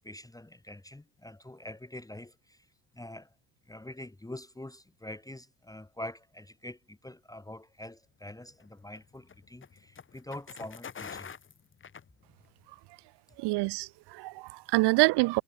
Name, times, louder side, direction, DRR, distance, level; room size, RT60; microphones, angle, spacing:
voice 1, 0.0-2.7 2.9-3.3 3.7-11.3, left 1 dB, 5° left, 2.0 m, -45 dB
sound 1, 8.2-12.7, left 7 dB, 25° left, 1.3 m, -47 dB
voice 2, 13.4-15.4, right 23 dB, 60° right, 0.5 m, -26 dB
cardioid pair, 105°, 47 cm